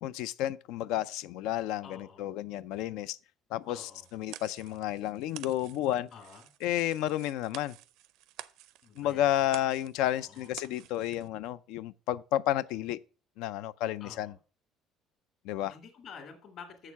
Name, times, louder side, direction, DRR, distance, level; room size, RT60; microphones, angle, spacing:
voice 1, 0.0-3.2 3.5-6.1 6.6-7.8 9.0-13.0 13.4-14.3 15.4-15.7, left 13 dB, 85° left, 0.4 m, -31 dB
voice 2, 1.8-2.3 3.7-4.1 6.1-6.5 8.8-9.5 10.0-10.5 14.0-14.3 15.7-16.9, left 6 dB, 45° left, 1.9 m, -49 dB
sound 1, 3.7-11.3, right 14 dB, 75° right, 0.5 m, -50 dB
7.2 x 6.6 x 5.7 m
cardioid pair, 160°, 0 cm